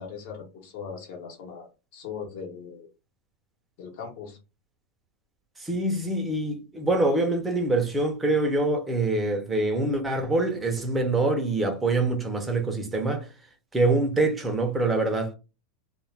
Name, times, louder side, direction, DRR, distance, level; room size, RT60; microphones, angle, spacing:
voice 1, 0.0-2.9 3.8-4.4, left 6 dB, 60° left, 1.1 m, -39 dB
voice 2, 5.6-13.3 13.7-15.3, right 2 dB, 10° right, 0.7 m, -25 dB
2.4 x 2.4 x 3.3 m
supercardioid pair, 140°, 0 cm